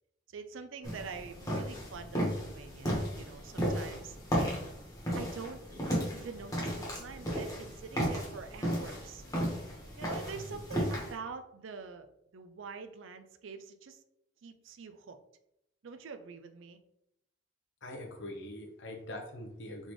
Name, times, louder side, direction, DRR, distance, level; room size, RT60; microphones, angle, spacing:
voice 1, 0.3-4.2 5.2-5.6 6.1-9.2 10.0-14.0 14.4-15.2 15.8-16.8, right 5 dB, 75° right, 9 dB, 0.5 m, -45 dB
sound 1, 0.8-11.1, equal, 20° left, 1.3 m, -34 dB
voice 2, 17.8-19.9, left 1 dB, 65° left, 2 dB, 0.9 m, -43 dB
3.9 x 3.8 x 3.1 m, 0.82 s
head